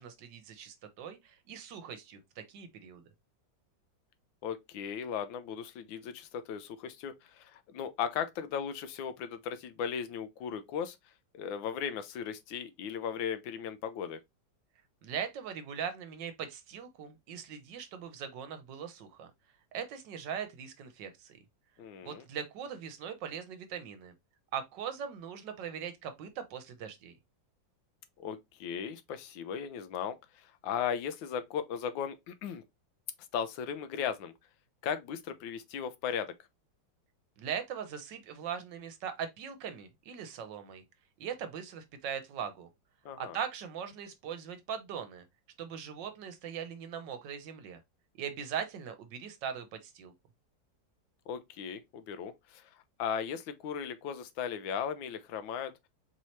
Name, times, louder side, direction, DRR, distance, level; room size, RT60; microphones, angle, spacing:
voice 1, 0.0-3.0 15.0-19.3 19.7-21.4 22.0-24.1 24.5-27.1 37.4-40.8 41.2-42.7 43.2-45.2 45.6-47.8 48.2-50.1, right 8 dB, 75° right, 1.4 m, -40 dB
voice 2, 4.4-11.0 11.3-14.2 21.8-22.2 28.2-32.6 33.3-34.3 34.8-36.3 43.0-43.4 51.3-52.7 53.0-55.7, left 7 dB, 90° left, 1.4 m, -37 dB
4.6 x 2.8 x 3.1 m
omnidirectional pair, 2.1 m